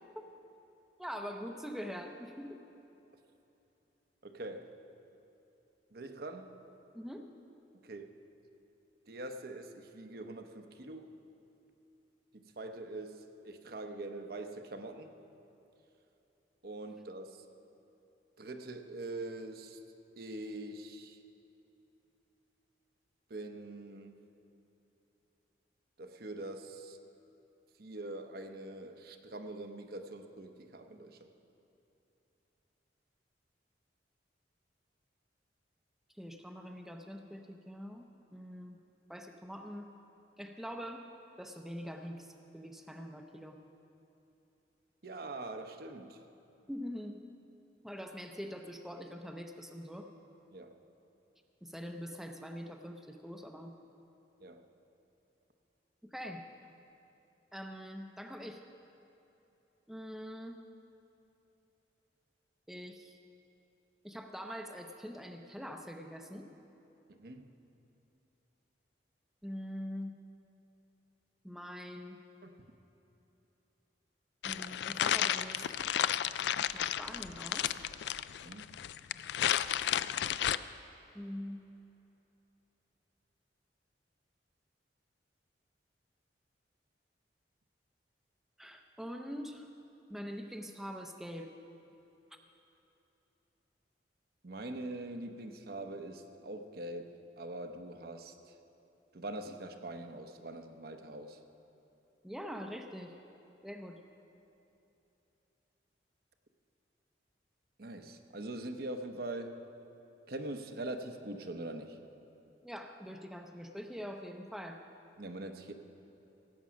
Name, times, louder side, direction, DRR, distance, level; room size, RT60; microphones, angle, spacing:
voice 1, 1.0-2.6 6.9-7.2 36.2-38.8 39.1-39.9 40.4-41.1 41.4-43.6 46.7-47.2 47.8-50.1 51.6-53.8 56.0-56.5 57.5-58.6 59.9-60.6 62.7-63.2 64.0-66.5 69.4-70.2 71.4-72.2 74.4-75.7 76.7-77.8 81.1-81.6 88.6-89.7 90.1-91.5 102.2-103.1 103.6-104.0 112.6-114.8, equal, ahead, 3 dB, 0.6 m, -44 dB
voice 2, 4.2-4.8 5.9-6.6 7.8-8.1 9.1-11.1 12.3-15.1 16.6-17.4 18.4-19.8 20.2-21.2 23.3-24.2 26.0-27.0 27.8-31.3 45.0-46.2 50.5-50.8 54.4-54.6 67.1-67.5 72.4-72.7 78.4-78.8 94.4-98.6 99.1-101.4 107.8-109.6 110.3-112.0 115.2-115.7, right 2 dB, 55° right, 6 dB, 0.8 m, -43 dB
sound 1, 74.4-80.6, left 10 dB, 70° left, 0.3 m, -32 dB
17.0 x 8.3 x 6.2 m, 3.0 s
head